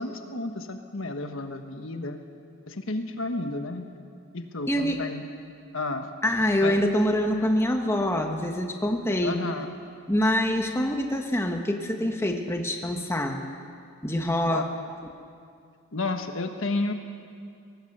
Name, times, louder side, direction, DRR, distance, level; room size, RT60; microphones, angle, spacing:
voice 1, 0.0-2.2 2.7-3.9 4.3-5.2 5.7-6.1 6.6-6.8 9.2-9.7 14.5-14.6 15.9-16.9, left 2 dB, 65° left, 6 dB, 1.4 m, -31 dB
voice 2, 4.7-5.0 6.2-9.4 10.1-13.4 14.0-14.6, left 1 dB, 10° left, 3 dB, 1.4 m, -25 dB
19.5 x 18.0 x 8.0 m, 2.3 s
head